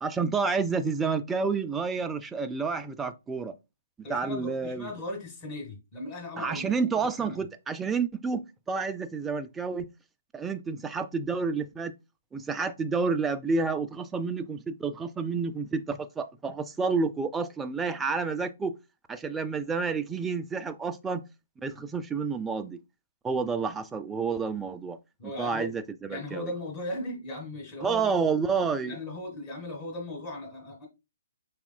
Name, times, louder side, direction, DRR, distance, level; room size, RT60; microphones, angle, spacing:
voice 1, 0.0-3.5 4.1-4.9 6.4-8.4 8.7-9.9 10.3-11.9 12.3-18.8 19.1-21.2 21.6-22.8 23.2-25.0 25.2-26.5 27.8-29.0, right 5 dB, 10° right, 0.4 m, -29 dB
voice 2, 4.0-7.4 25.2-25.7 26.1-28.3 28.8-30.9, left 1 dB, 30° left, 1.7 m, -38 dB
5.8 x 3.5 x 2.2 m
figure-of-eight pair, 130°, 0 cm